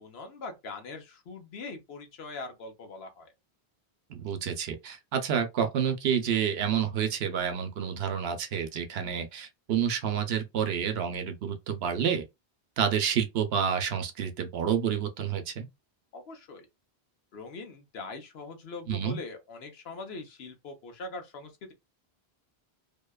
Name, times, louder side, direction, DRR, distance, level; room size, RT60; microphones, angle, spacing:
voice 1, 0.0-3.3 16.1-16.7 17.3-21.7, left 3 dB, 75° left, 1.0 m, -42 dB
voice 2, 4.1-12.3 12.8-15.7 18.9-19.2, right 8 dB, 75° right, 0.8 m, -29 dB
2.7 x 2.2 x 2.2 m
omnidirectional pair, 1.1 m